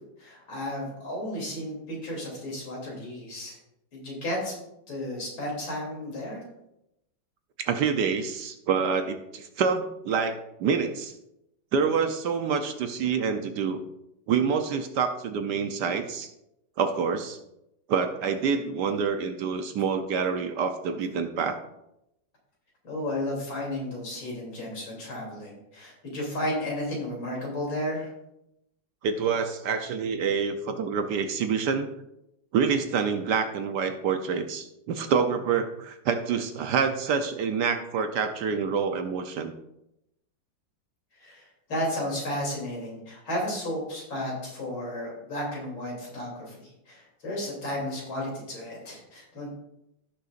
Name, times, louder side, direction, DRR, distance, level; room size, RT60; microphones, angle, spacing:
voice 1, 0.2-3.6 3.9-4.5 4.9-6.4 22.8-28.1 41.2-49.5, left 1 dB, 85° left, -3 dB, 3.9 m, -33 dB
voice 2, 7.6-11.1 11.7-13.8 14.3-16.3 16.8-17.4 17.9-21.6 29.0-31.9 32.5-39.5, right 6 dB, 65° right, 7 dB, 1.2 m, -27 dB
16.0 x 6.6 x 2.5 m, 0.84 s
omnidirectional pair, 2.1 m